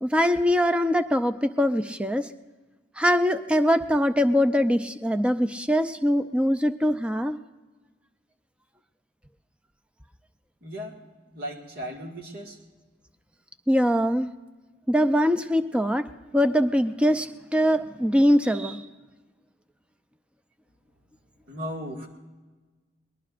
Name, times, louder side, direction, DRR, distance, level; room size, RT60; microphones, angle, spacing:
voice 1, 0.0-2.3 3.0-7.4 13.7-14.3 14.9-16.1 16.3-18.8, equal, 5° right, 10 dB, 0.5 m, -22 dB
voice 2, 10.6-11.0 11.3-12.6 21.5-22.1, equal, 55° right, 1 dB, 2.0 m, -36 dB
22.0 x 19.5 x 2.5 m, 1.3 s
head